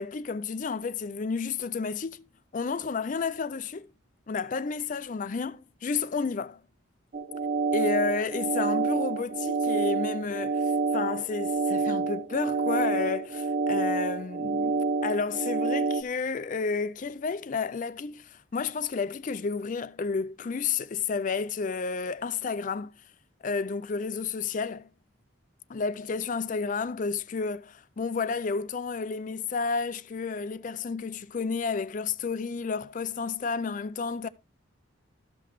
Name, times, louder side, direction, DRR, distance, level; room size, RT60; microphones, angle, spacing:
voice 1, 0.0-2.2 2.5-3.9 4.3-6.6 7.7-22.9 23.4-24.9 25.7-34.3, left 5 dB, 40° left, 0.4 m, -31 dB
sound 1, 7.1-16.0, right 4 dB, 45° right, 0.5 m, -28 dB
13.0 x 5.8 x 3.1 m
head